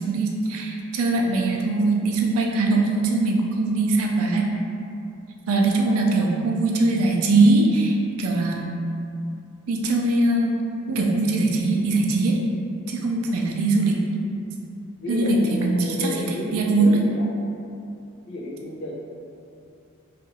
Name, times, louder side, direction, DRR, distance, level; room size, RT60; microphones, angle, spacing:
voice 1, 0.0-4.5 5.5-8.7 9.7-12.4 12.9-14.0 15.1-16.3 16.5-17.0, right 2 dB, 80° right, 0 dB, 0.4 m, -21 dB
voice 2, 5.8-6.2 15.0-17.3 18.3-18.9, left 1 dB, 55° left, -3 dB, 0.4 m, -32 dB
2.8 x 2.5 x 2.6 m, 2.6 s
head